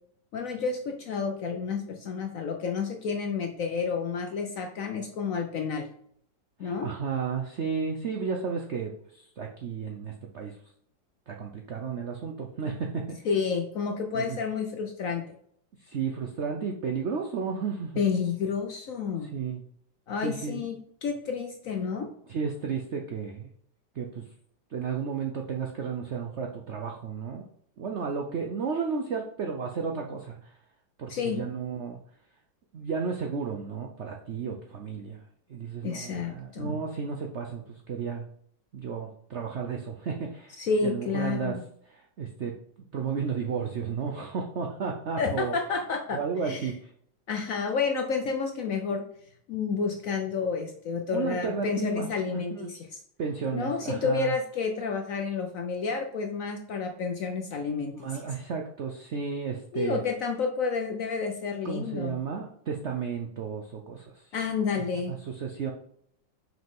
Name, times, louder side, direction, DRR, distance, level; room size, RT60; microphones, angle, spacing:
voice 1, 0.3-5.9 6.6-6.9 13.2-15.3 18.0-19.3 20.1-22.1 31.1-31.5 35.8-36.8 40.5-41.6 45.2-46.7 47.3-49.1 49.5-53.0 53.5-58.2 59.7-62.2 64.3-65.2, left 5 dB, 65° left, 4 dB, 0.8 m, -30 dB
voice 2, 6.6-10.6 11.3-13.2 14.1-14.4 15.8-18.0 19.3-19.6 20.2-20.6 22.3-23.5 23.9-24.2 24.7-27.4 27.8-30.5 31.0-32.0 32.7-35.2 35.5-38.2 38.7-41.6 41.9-42.5 42.9-45.5 46.1-46.9 51.1-52.7 53.2-54.3 57.9-60.0 61.6-64.2 65.1-65.7, right 6 dB, 70° right, 2 dB, 0.6 m, -33 dB
6.0 x 5.0 x 3.6 m, 0.65 s
omnidirectional pair, 2.0 m